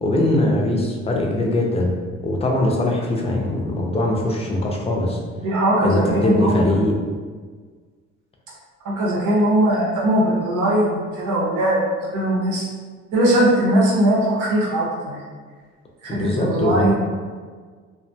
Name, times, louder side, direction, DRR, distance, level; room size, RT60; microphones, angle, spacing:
voice 1, 0.0-1.9 2.2-5.2 5.8-7.0 16.1-16.9, left 1 dB, 20° left, 0 dB, 0.4 m, -21 dB
voice 2, 5.4-6.6 8.8-11.8 12.1-12.7 13.1-15.2 16.0-17.0, right 1 dB, 85° right, -4 dB, 0.8 m, -20 dB
2.3 x 2.1 x 2.6 m, 1.5 s
cardioid pair, 90°, 30 cm